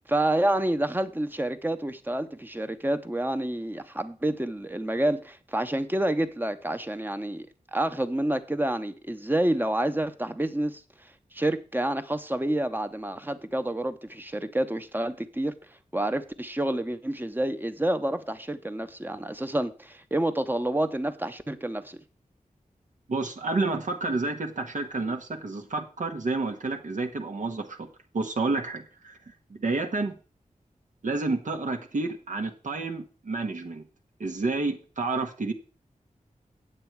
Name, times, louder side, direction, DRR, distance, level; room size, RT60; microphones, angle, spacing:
voice 1, 0.0-22.0, right 1 dB, 15° right, 0.8 m, -28 dB
voice 2, 23.1-27.9 28.1-30.2 31.0-33.8 34.2-35.5, right 3 dB, 65° right, 1.2 m, -30 dB
8.8 x 8.0 x 4.7 m
wide cardioid pair, 95°, 14 cm